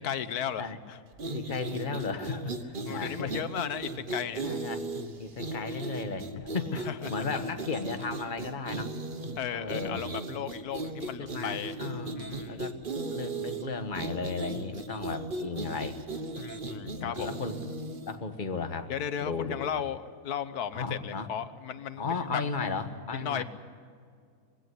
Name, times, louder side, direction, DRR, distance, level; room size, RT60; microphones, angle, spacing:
voice 1, 0.0-1.0 2.8-4.5 6.7-7.3 9.4-11.8 12.2-12.6 16.4-17.3 18.9-22.0 22.3-22.7 23.2-23.4, left 9 dB, 80° left, 13 dB, 1.4 m, -35 dB
sound 1, 1.1-18.2, right 2 dB, 35° right, 1.3 m, -37 dB
voice 2, 1.3-3.3 4.4-4.8 5.2-8.9 9.5-10.1 11.0-12.8 13.1-16.0 16.8-17.8 18.0-18.9 19.2-19.8 20.7-21.3 22.0-23.4, left 4 dB, 35° left, 7 dB, 1.5 m, -35 dB
22.0 x 16.5 x 9.6 m, 2.2 s
omnidirectional pair, 1.6 m